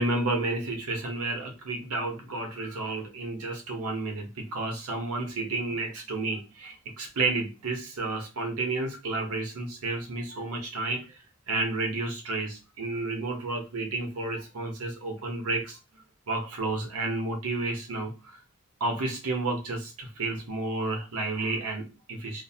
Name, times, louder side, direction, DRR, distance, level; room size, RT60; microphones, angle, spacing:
voice 1, 0.0-11.2 11.5-15.8 16.3-18.4 18.8-22.4, right 2 dB, 85° right, 2 dB, 0.8 m, -31 dB
2.6 x 2.0 x 2.7 m, 0.29 s
head